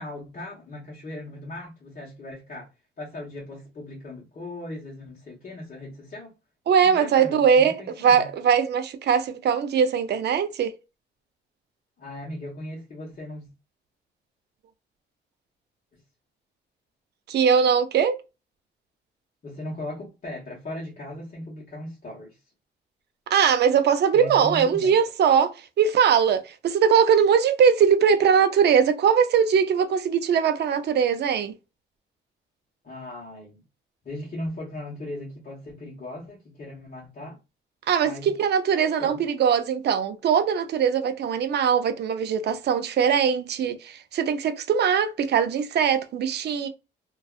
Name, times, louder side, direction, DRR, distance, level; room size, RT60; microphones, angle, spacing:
voice 1, 0.0-2.7 3.0-6.3 6.8-8.3 12.0-13.5 19.4-22.4 24.1-25.0 32.8-33.6 34.0-37.4 38.0-38.3 39.0-39.2, left 1 dB, 40° left, 1.1 m, -38 dB
voice 2, 6.7-10.7 17.3-18.2 23.3-31.5 37.9-46.7, right 7 dB, 55° right, 0.5 m, -21 dB
2.6 x 2.3 x 2.3 m
cardioid pair, 90°, 20 cm